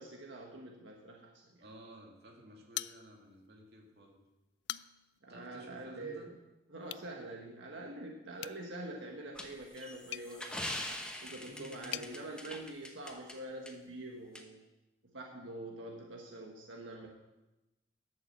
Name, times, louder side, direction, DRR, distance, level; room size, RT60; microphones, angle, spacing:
voice 1, 0.0-1.6 5.2-6.3 6.7-10.8 11.2-14.6 15.1-17.1, right 2 dB, 90° right, 0 dB, 1.5 m, -45 dB
voice 2, 1.6-4.2 5.3-6.3 11.4-12.0, right 1 dB, 60° right, 0 dB, 2.3 m, -54 dB
sound 1, 2.7-3.5 3.9-4.0 4.5-5.2 6.8-7.1 8.4-12.1, left 14 dB, 70° left, 0.3 m, -45 dB
sound 2, 9.3-13.3 13.7-13.8 14.3-14.4, left 1 dB, 5° left, 0.9 m, -43 dB
11.5 x 6.6 x 7.6 m, 1.0 s
head